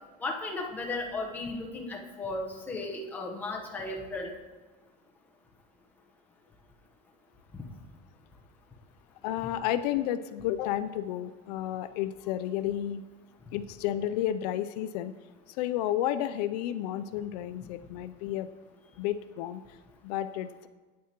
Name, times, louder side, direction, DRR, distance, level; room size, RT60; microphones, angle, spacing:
voice 1, 0.2-4.3, left 2 dB, 10° left, -1 dB, 0.9 m, -35 dB
voice 2, 9.2-13.0 13.5-15.1 15.5-18.5 19.0-19.6 20.0-20.7, left 12 dB, 80° left, 12 dB, 0.4 m, -31 dB
9.4 x 8.5 x 2.9 m, 1.3 s
cardioid pair, 170°, 21 cm